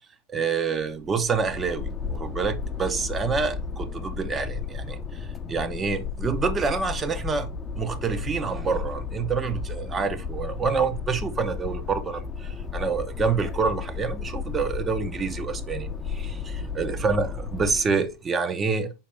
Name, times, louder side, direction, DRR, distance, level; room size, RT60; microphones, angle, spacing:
voice 1, 0.3-7.5 7.8-18.9, right 5 dB, 20° right, 0.8 m, -27 dB
sound 1, 0.9-18.0, left 5 dB, 15° left, 0.7 m, -33 dB
5.7 x 5.0 x 3.3 m
figure-of-eight pair, 90°, 0 cm